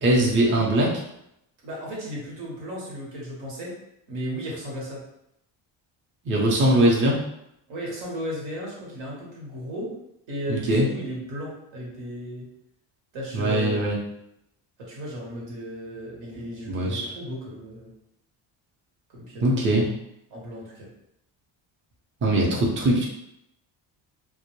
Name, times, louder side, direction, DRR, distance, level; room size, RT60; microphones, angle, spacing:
voice 1, 0.0-0.9 6.3-7.2 10.5-10.8 13.3-14.0 16.7-17.0 19.4-19.9 22.2-23.0, right 1 dB, 25° right, -3 dB, 0.6 m, -21 dB
voice 2, 1.6-3.7 4.1-5.0 7.7-9.9 10.3-12.5 13.1-13.8 14.9-17.9 19.1-19.5 20.3-20.9, equal, 80° right, -4 dB, 1.1 m, -35 dB
2.2 x 2.0 x 3.0 m, 0.79 s
cardioid pair, 100°, 46 cm